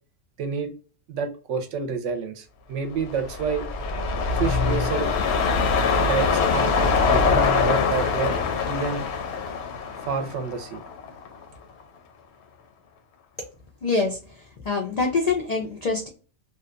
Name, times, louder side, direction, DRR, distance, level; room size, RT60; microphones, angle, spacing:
voice 1, 0.4-0.7 1.1-3.7 4.4-5.1 6.0-6.7 7.0-8.4 8.7-9.1 10.0-10.8, right 5 dB, 75° right, 0.9 m, -28 dB
sound 1, 3.0-11.4 11.8-11.9, left 5 dB, 65° left, 0.8 m, -23 dB
voice 2, 13.8-16.1, left 4 dB, 80° left, 0.3 m, -25 dB
2.7 x 2.2 x 2.4 m
omnidirectional pair, 1.3 m